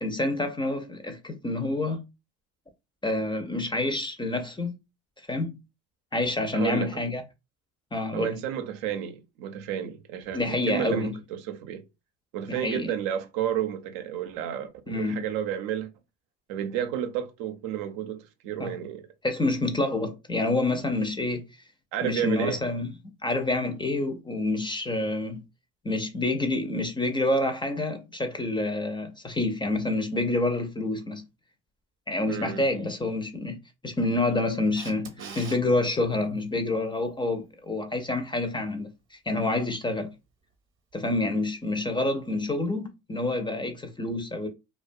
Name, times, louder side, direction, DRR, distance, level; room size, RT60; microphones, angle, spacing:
voice 1, 0.0-2.0 3.0-4.7 5.3-5.6 6.1-7.2 7.9-8.4 10.3-11.2 12.5-12.9 14.9-15.2 18.6-18.7 19.2-21.4 22.0-22.9 23.2-25.4 25.8-31.2 32.1-33.6 33.8-40.1 40.9-44.5, left 2 dB, 15° left, 0.4 m, -28 dB
voice 2, 6.5-6.9 8.1-11.8 12.3-15.9 16.5-19.1 21.9-22.6 32.3-32.6 35.2-35.4, right 9 dB, 85° right, 0.6 m, -31 dB
Camera, 34.8-35.6 42.3-42.4, right 5 dB, 35° right, 0.7 m, -42 dB
2.4 x 2.2 x 2.5 m
supercardioid pair, 95°, 35 cm